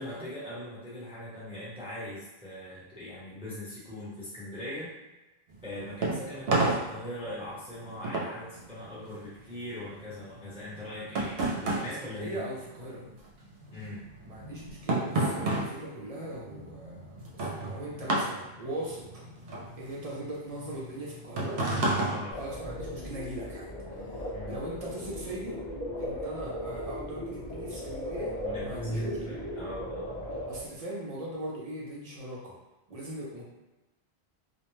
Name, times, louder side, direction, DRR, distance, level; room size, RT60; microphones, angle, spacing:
voice 1, 0.0-4.9 5.6-12.4 13.7-14.0 22.1-22.4 24.3-24.6 28.4-30.4, left 1 dB, 5° right, -9 dB, 0.8 m, -41 dB
sound 1, 5.5-13.2 13.4-23.1, right 2 dB, 75° right, 0.8 m, -32 dB
voice 2, 11.7-13.0 14.2-19.0 19.8-21.6 22.3-25.6 26.0-29.4 30.5-32.6 32.9-33.4, right 1 dB, 40° right, -5 dB, 0.6 m, -40 dB
sound 2, 22.3-30.6, equal, 25° left, 0.7 m, -37 dB
2.4 x 2.1 x 3.0 m, 1.1 s
omnidirectional pair, 1.1 m